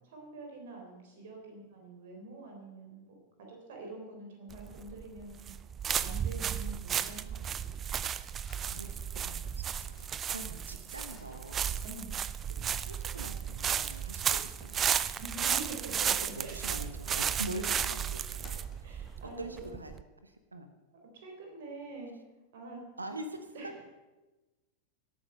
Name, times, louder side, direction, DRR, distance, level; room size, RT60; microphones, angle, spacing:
voice 1, 0.0-5.5 6.0-7.8 11.8-12.1 15.2-16.9 18.8-19.7 21.1-22.1 22.5-22.8 23.5-23.8, right 2 dB, 55° right, 1 dB, 3.7 m, -46 dB
sound 1, 4.5-20.0, right 8 dB, 25° right, 0.5 m, -34 dB
sound 2, 8.5-12.3 13.2-17.9 18.4-19.5, left 3 dB, 25° left, 2.7 m, -61 dB
voice 2, 8.6-11.7 12.5-14.8 16.2-20.7 23.0-23.7, right 1 dB, 80° right, 8 dB, 1.1 m, -44 dB
17.5 x 8.7 x 5.5 m, 1.1 s
figure-of-eight pair, 90°, 0 cm